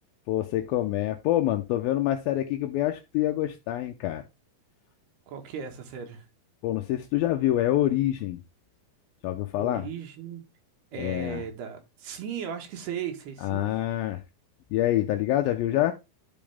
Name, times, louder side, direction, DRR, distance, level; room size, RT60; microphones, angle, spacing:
voice 1, 0.3-4.2 6.6-8.4 9.2-9.9 11.0-11.4 13.4-14.2 14.7-15.9, left 13 dB, 80° left, 2.4 m, -26 dB
voice 2, 5.3-6.2 9.6-10.4 10.9-13.7, right 7 dB, 90° right, 3.7 m, -36 dB
11.5 x 5.3 x 3.5 m
omnidirectional pair, 4.4 m